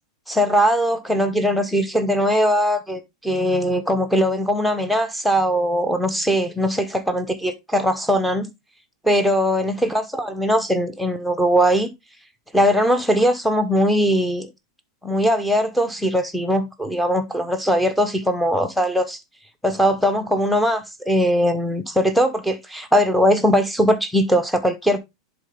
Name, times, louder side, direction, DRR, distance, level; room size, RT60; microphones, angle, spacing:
voice 1, 0.3-8.5 9.0-11.9 12.5-14.5 15.0-19.2 19.6-25.0, equal, ahead, 0.8 m, -20 dB
10.5 x 3.9 x 3.3 m
supercardioid pair, 150°, 3 cm